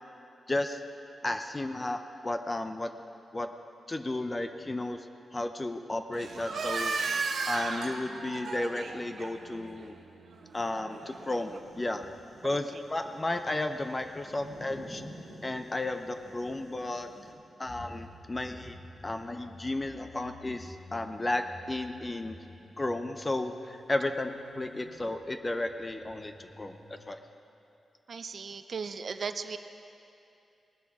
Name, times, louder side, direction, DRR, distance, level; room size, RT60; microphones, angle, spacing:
voice 1, 0.5-0.8 1.2-2.9 3.3-3.5 3.9-5.1 5.3-7.2 7.5-9.9 10.5-12.0 12.4-15.0 15.4-17.1 17.6-18.8 19.0-22.4 22.8-27.2, left 2 dB, 20° left, 7 dB, 0.5 m, -33 dB
sound 1, 6.1-11.6, right 4 dB, 70° right, 1.0 m, -35 dB
sound 2, 11.0-17.3, equal, 45° left, 2.4 m, -50 dB
sound 3, 17.6-27.1, left 1 dB, 65° left, 3.6 m, -52 dB
voice 2, 28.1-29.6, right 5 dB, 50° right, 9 dB, 0.4 m, -36 dB
19.5 x 12.0 x 3.5 m, 2.7 s
wide cardioid pair, 145°, 0 cm